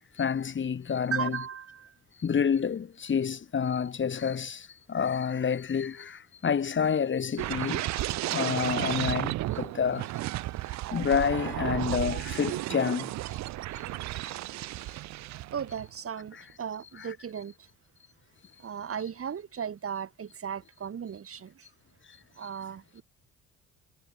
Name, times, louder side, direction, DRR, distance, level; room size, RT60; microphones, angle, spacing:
voice 1, 0.2-1.4 2.2-7.8 8.1-10.1 10.9-13.1 17.0-17.1, left 7 dB, 40° left, 1.6 m, -29 dB
voice 2, 1.1-1.9 15.5-17.5 18.6-21.7 22.4-23.0, right 7 dB, 50° right, 3.3 m, -36 dB
sound 1, 7.4-15.9 16.2-16.5, right 16 dB, 65° right, 0.4 m, -33 dB
cardioid pair, 90°, 30 cm